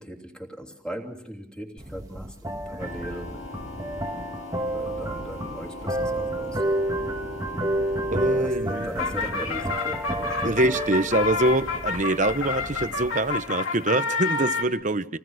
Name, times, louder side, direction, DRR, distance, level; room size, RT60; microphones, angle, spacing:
voice 1, 0.0-3.4 4.7-6.6 8.3-8.6 8.8-10.6, equal, 5° left, 2 dB, 3.0 m, -38 dB
sound 1, 1.8-13.4, right 1 dB, 15° right, 1.6 m, -30 dB
sound 2, 2.8-8.4, left 2 dB, 60° left, 2.7 m, -40 dB
voice 2, 8.1-8.9 10.4-15.2, right 2 dB, 35° right, 12 dB, 0.9 m, -24 dB
sound 3, 8.5-14.6, left 4 dB, 80° left, 2.9 m, -29 dB
28.5 x 19.0 x 6.4 m, 0.68 s
head